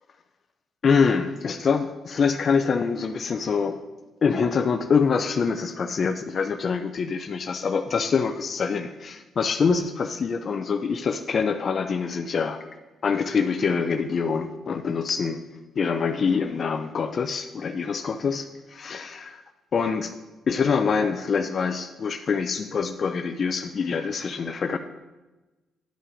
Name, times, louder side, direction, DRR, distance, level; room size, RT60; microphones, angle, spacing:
voice 1, 0.8-3.8 4.2-12.6 13.0-15.4 15.8-19.4 19.7-20.1 20.5-24.8, left 5 dB, 50° left, 8 dB, 0.5 m, -25 dB
10.0 x 4.7 x 5.1 m, 1.1 s
cardioid pair, 90°, 0 cm